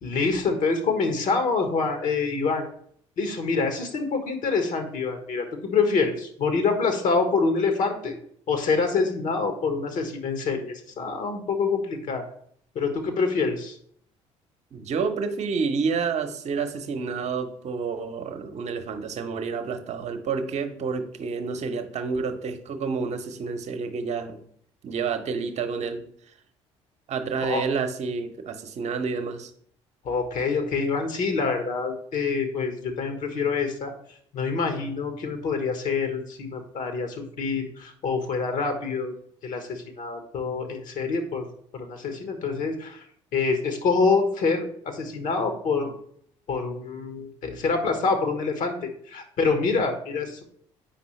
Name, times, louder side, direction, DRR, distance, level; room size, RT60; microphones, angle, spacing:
voice 1, 0.0-2.7 3.2-8.2 8.5-12.2 12.7-13.8 27.4-27.6 30.0-33.9 34.3-39.1 39.4-41.5 41.7-43.0 43.3-45.9 46.5-50.4, left 4 dB, 55° left, 6 dB, 1.3 m, -26 dB
voice 2, 14.7-24.4 24.8-26.0 27.1-29.5, right 5 dB, 45° right, 7 dB, 0.9 m, -29 dB
8.5 x 5.4 x 3.2 m, 0.63 s
figure-of-eight pair, 50°, 16 cm